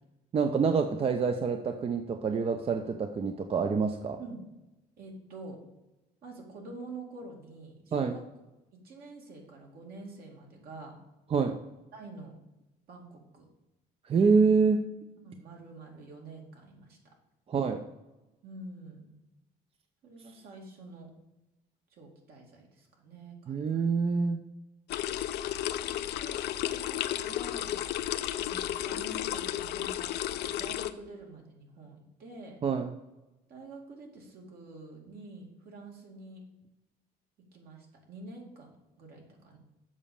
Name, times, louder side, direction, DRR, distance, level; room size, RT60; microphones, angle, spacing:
voice 1, 0.3-4.2 7.9-8.2 11.3-11.6 14.1-14.9 17.5-17.8 23.5-24.4 32.6-32.9, right 5 dB, 35° right, 6 dB, 0.6 m, -26 dB
voice 2, 5.0-5.6 6.2-8.2 8.7-11.0 11.9-12.3 12.9-13.4 15.2-17.0 18.4-19.2 20.0-21.1 21.9-23.8 25.8-26.4 26.7-27.8 28.4-30.1 30.5-32.6 33.5-36.4 37.5-39.6, right 2 dB, 65° right, 0 dB, 2.4 m, -47 dB
sound 1, 24.9-30.9, left 12 dB, 75° left, 0.5 m, -33 dB
7.4 x 5.0 x 7.0 m, 1.0 s
cardioid pair, 110°, 17 cm